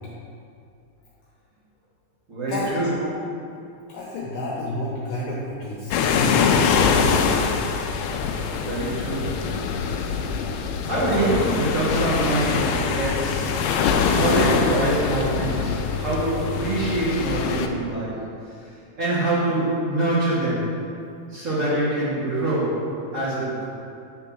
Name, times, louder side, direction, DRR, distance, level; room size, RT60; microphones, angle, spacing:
voice 1, 2.3-2.9 8.7-9.4 10.8-13.5 14.1-18.7 19.0-20.7 21.3-23.6, right 2 dB, 35° right, -11 dB, 1.3 m, -25 dB
voice 2, 3.9-7.4, left 1 dB, 70° left, -5 dB, 2.4 m, -30 dB
sound 1, 5.9-17.7, left 6 dB, 90° left, 1.9 m, -23 dB
10.0 x 4.4 x 6.2 m, 2.5 s
omnidirectional pair, 4.5 m